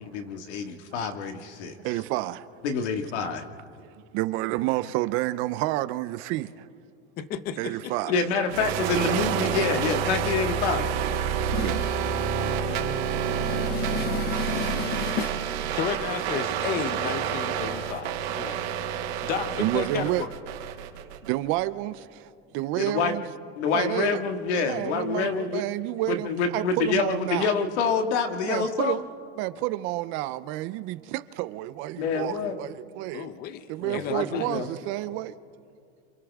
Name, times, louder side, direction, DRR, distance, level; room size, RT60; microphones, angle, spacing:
voice 1, 0.1-1.8 2.6-3.4 8.1-10.9 12.7-12.9 18.4-18.6 19.4-19.6 22.7-23.1 23.6-25.6 26.1-29.0 32.0-32.6 33.8-34.7, left 5 dB, 85° left, 2.0 m, -27 dB
voice 2, 1.8-2.5 4.1-6.7 7.6-8.2 9.1-9.2 11.4-11.8 13.6-13.7 18.9-19.2 19.6-20.3 21.2-23.2 23.7-24.2 24.6-27.6 28.5-29.0 29.4-33.3 33.7-35.3, right 17 dB, 40° right, 0.5 m, -30 dB
voice 3, 7.2-8.1 11.5-15.4 15.7-18.2 19.2-20.3 33.1-34.5, left 8 dB, 30° left, 0.8 m, -33 dB
sound 1, 8.5-21.3, right 7 dB, 65° right, 3.1 m, -28 dB
28.0 x 27.0 x 3.6 m
supercardioid pair, 160°, 33 cm